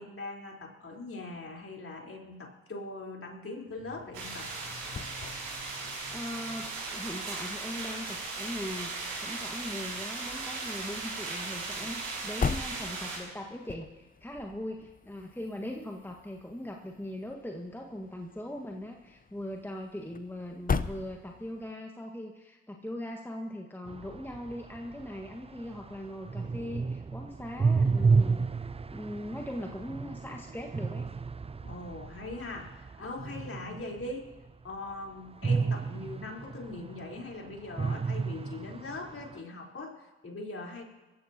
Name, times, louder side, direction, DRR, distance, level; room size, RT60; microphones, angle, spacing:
voice 1, 0.0-4.5 31.6-34.3 34.6-40.8, left 2 dB, 40° left, -1 dB, 3.8 m, -41 dB
sound 1, 3.7-21.7, left 5 dB, 25° left, 0.7 m, -41 dB
sound 2, 4.1-13.2, right 3 dB, 75° right, 5.3 m, -37 dB
voice 2, 5.8-28.5 28.9-31.1 33.7-33.8, left 1 dB, 5° left, 2 dB, 1.5 m, -40 dB
sound 3, 23.9-34.1 35.4-37.3 37.7-39.3, right 4 dB, 20° right, 0.6 m, -31 dB
23.5 x 14.0 x 2.8 m, 1.2 s
hypercardioid pair, 45°, 33 cm